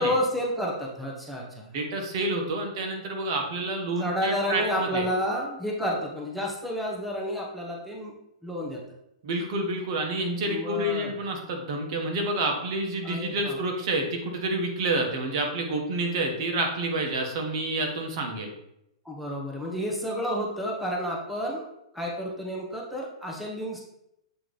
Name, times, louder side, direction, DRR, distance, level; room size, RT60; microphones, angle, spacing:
voice 1, 0.0-1.8 4.0-8.1 8.4-8.8 10.5-11.3 13.0-13.6 19.0-21.6 21.9-23.8, equal, ahead, -1 dB, 1.0 m, -30 dB
voice 2, 1.7-5.1 9.2-18.5, right 2 dB, 50° right, 3 dB, 1.3 m, -28 dB
7.6 x 3.1 x 4.0 m, 0.81 s
hypercardioid pair, 130°, 3 cm